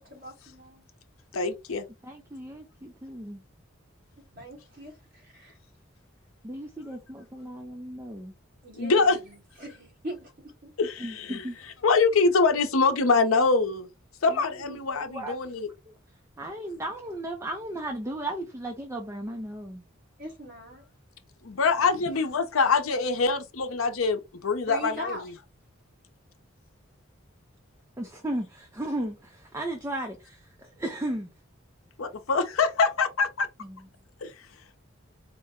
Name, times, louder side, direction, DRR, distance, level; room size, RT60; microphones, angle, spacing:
voice 1, 0.1-0.8 4.4-5.6 8.6-10.3 10.6-10.7 20.2-20.8 24.6-25.3 33.9-34.0, equal, 45° right, 1.8 m, -41 dB
voice 2, 1.3-1.8 8.8-9.2 10.8-11.4 11.8-13.9 14.2-15.7 21.4-25.2 32.0-33.5 34.2-34.3, left 4 dB, 90° left, 0.7 m, -24 dB
voice 3, 2.0-3.4 6.4-8.3 11.0-11.6 14.3-14.8 15.1-15.3 15.9-16.0 16.4-19.8 28.0-31.3 33.6-33.8, right 1 dB, 15° right, 0.5 m, -35 dB
4.4 x 2.1 x 3.5 m
head